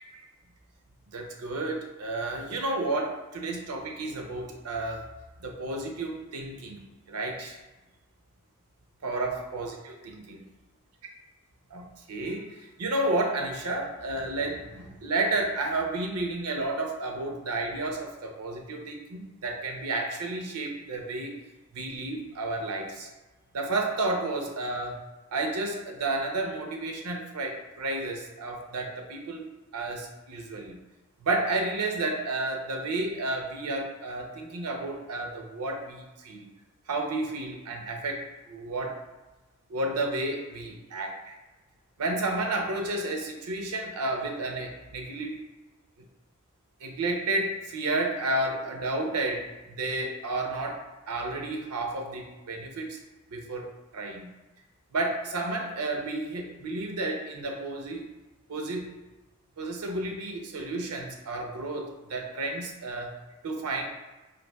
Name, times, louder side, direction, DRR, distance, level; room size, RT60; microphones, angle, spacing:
voice 1, 1.1-5.1 5.4-6.8 7.1-7.6 9.0-10.4 11.7-21.3 21.7-23.1 23.5-25.0 25.3-29.4 29.7-30.8 31.2-36.5 36.9-39.0 39.7-41.4 42.0-45.4 46.8-53.0 53.3-53.7 53.9-54.3 54.9-58.0 58.5-58.9 59.6-63.1 63.4-63.8, right 2 dB, 90° right, 2 dB, 0.6 m, -31 dB
4.0 x 2.6 x 2.2 m, 1.1 s
head